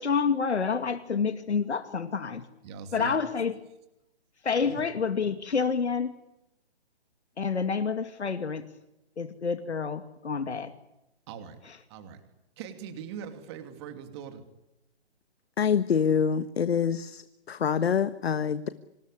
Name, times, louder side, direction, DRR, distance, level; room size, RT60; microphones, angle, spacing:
voice 1, 0.0-2.5 2.9-3.5 4.4-6.1 7.4-8.6 9.2-10.7, left 5 dB, 90° left, 9 dB, 2.4 m, -28 dB
voice 2, 2.6-3.2 4.6-4.9 11.3-11.6 11.9-12.2 12.6-14.5, right 7 dB, 25° right, 8 dB, 2.8 m, -41 dB
voice 3, 15.6-18.7, left 7 dB, 65° left, 12 dB, 1.4 m, -26 dB
26.5 x 20.0 x 9.9 m, 0.89 s
hypercardioid pair, 160°, 33 cm